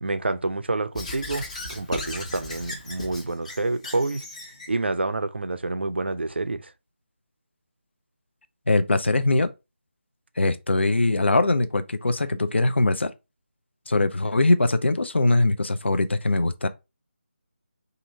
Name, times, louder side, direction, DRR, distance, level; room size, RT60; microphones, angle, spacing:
voice 1, 0.0-1.4 1.7-4.3 4.7-6.7, right 2 dB, 60° right, 0.4 m, -28 dB
Squeak / Writing, 0.9-4.7, left 2 dB, 35° left, 0.9 m, -36 dB
voice 2, 8.7-9.5 10.4-13.1 13.9-16.7, left 2 dB, 65° left, 0.4 m, -22 dB
2.8 x 2.5 x 4.0 m
figure-of-eight pair, 160°, 7 cm